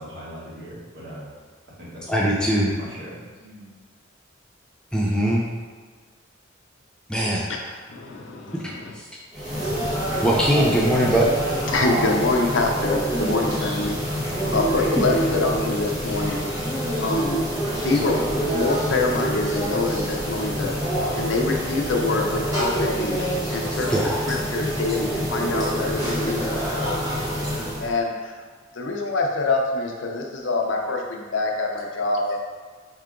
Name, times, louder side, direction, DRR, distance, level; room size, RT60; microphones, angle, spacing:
voice 1, 0.0-1.3 1.8-2.1 2.6-3.7, equal, 60° right, -7 dB, 1.5 m, -40 dB
voice 2, 2.1-2.7 4.9-5.5 7.1-7.5 8.5-9.0 10.2-11.3 23.7-24.2, equal, 5° left, -4 dB, 0.5 m, -21 dB
voice 3, 7.5-8.9 9.5-9.8 10.1-10.3 11.7-14.0 14.5-16.4 17.0-17.4 17.8-20.7 21.1-23.9 24.3-27.0 27.8-28.4 28.7-32.4, left 3 dB, 65° left, 1 dB, 0.6 m, -25 dB
sound 1, 9.3-28.0, right 1 dB, 20° right, 1.1 m, -26 dB
4.7 x 2.8 x 3.7 m, 1.5 s
head